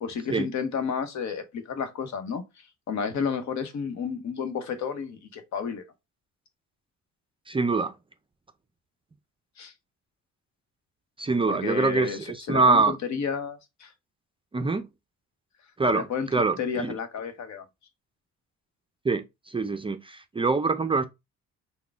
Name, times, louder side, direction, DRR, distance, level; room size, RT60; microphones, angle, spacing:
voice 1, 0.0-2.4 2.9-5.8 9.6-9.7 11.4-12.2 12.5-13.9 15.9-17.6, left 6 dB, 65° left, 0.9 m, -31 dB
voice 2, 7.5-7.9 11.2-13.0 14.5-14.9 15.8-16.1 16.3-16.9 19.0-21.1, right 4 dB, 20° right, 0.4 m, -24 dB
3.9 x 2.2 x 3.4 m
cardioid pair, 90°, 30 cm